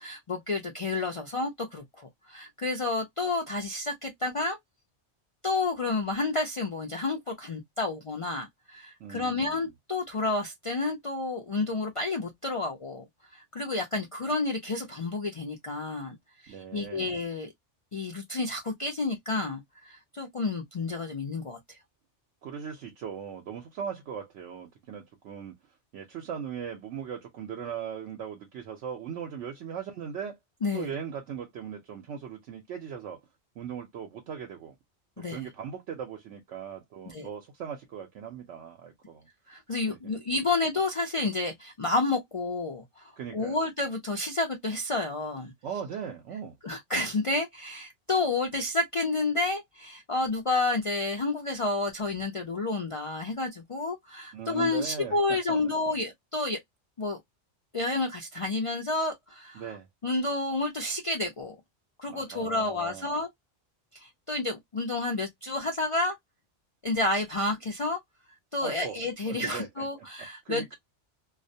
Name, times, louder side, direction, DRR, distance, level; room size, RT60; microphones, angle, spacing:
voice 1, 0.0-4.6 5.4-13.0 13.3-16.1 16.4-17.5 17.9-21.8 30.6-30.9 35.2-35.5 37.1-37.3 39.5-45.5 46.6-56.6 57.0-57.2 57.7-59.6 60.0-61.6 62.0-63.3 63.9-66.2 66.8-68.0 68.5-70.7, left 2 dB, 55° left, 0.3 m, -30 dB
voice 2, 9.0-9.7 16.5-17.1 22.4-25.5 25.9-30.4 30.7-33.2 33.6-34.8 35.3-39.3 39.9-40.2 43.2-43.6 45.6-46.6 54.3-56.0 59.5-59.9 62.1-63.2 68.6-69.0 69.3-70.1 70.4-70.7, right 7 dB, 80° right, 0.9 m, -39 dB
2.3 x 2.1 x 2.6 m
omnidirectional pair, 1.2 m